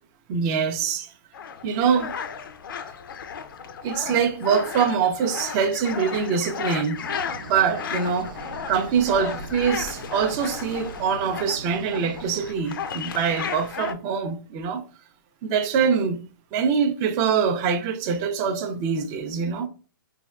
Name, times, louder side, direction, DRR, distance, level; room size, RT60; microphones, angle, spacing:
voice 1, 0.3-1.1 1.6-2.1 3.8-7.0 7.5-8.3 8.7-14.8 15.4-16.2 16.5-19.7, right 6 dB, 30° right, 0.4 m, -24 dB
sound 1, 1.3-13.9, left 7 dB, 70° left, 0.4 m, -34 dB
sound 2, 6.9-12.5, right 3 dB, 65° right, 0.7 m, -41 dB
3.3 x 2.2 x 2.2 m
hypercardioid pair, 140°, 12 cm